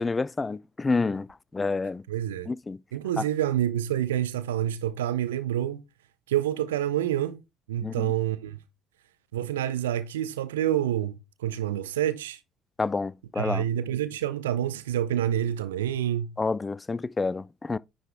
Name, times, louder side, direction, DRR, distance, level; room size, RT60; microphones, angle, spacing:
voice 1, 0.0-2.0 2.5-2.8 3.2-3.3 7.8-8.1 12.8-13.6 16.4-17.8, left 3 dB, 20° left, 0.3 m, -29 dB
voice 2, 2.1-2.5 2.9-5.8 6.3-7.4 7.7-8.6 9.3-12.4 13.4-16.4, right 11 dB, 75° right, 0.6 m, -28 dB
9.9 x 3.9 x 3.5 m
figure-of-eight pair, 55°, 0 cm